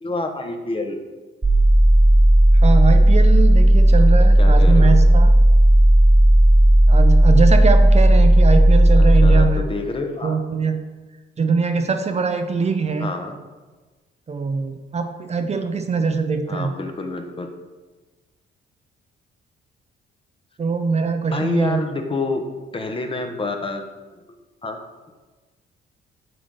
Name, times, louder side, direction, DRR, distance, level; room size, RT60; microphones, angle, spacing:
voice 1, 0.0-1.0 4.4-5.0 9.0-10.4 13.0-13.4 16.5-17.5 21.3-22.4 22.7-23.8 24.6-24.8, left 3 dB, 25° left, 5 dB, 1.1 m, -27 dB
sound 1, 1.4-9.4, right 1 dB, 15° right, 1.6 m, -12 dB
voice 2, 2.5-5.3 6.9-9.6 10.2-10.8 11.4-13.1 14.3-16.7 20.6-21.8, right 5 dB, 35° right, 7 dB, 0.6 m, -22 dB
7.9 x 3.8 x 6.4 m, 1.3 s
cardioid pair, 90°, 20 cm